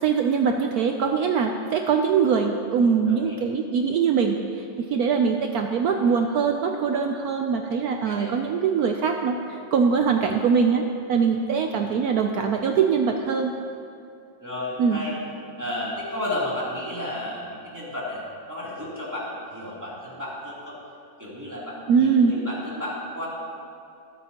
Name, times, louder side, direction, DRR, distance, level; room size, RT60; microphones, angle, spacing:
voice 1, 0.0-4.4 4.8-9.4 9.7-13.5 14.8-15.0 21.9-22.4, right 6 dB, 70° right, 4 dB, 1.0 m, -22 dB
voice 2, 3.1-3.4 8.0-8.3 14.4-15.2 15.6-18.2 18.5-20.8 21.2-23.3, left 1 dB, 10° right, -8 dB, 3.0 m, -32 dB
22.5 x 8.4 x 2.9 m, 2.6 s
omnidirectional pair, 1.9 m